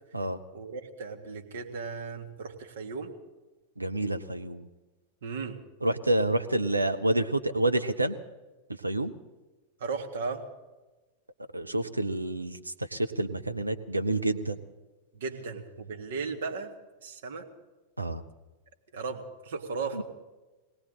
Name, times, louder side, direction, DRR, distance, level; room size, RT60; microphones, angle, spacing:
voice 1, 0.5-3.1 5.2-5.6 6.5-6.6 9.8-10.4 15.1-16.7 17.0-17.5 18.9-20.0, right 4 dB, 60° right, 3 dB, 1.7 m, -36 dB
voice 2, 3.8-4.7 5.8-8.2 8.8-9.1 11.5-14.6 18.0-18.2 19.9-20.0, right 1 dB, 85° right, 8 dB, 0.8 m, -28 dB
21.0 x 17.5 x 3.8 m, 1.1 s
figure-of-eight pair, 90°, 0 cm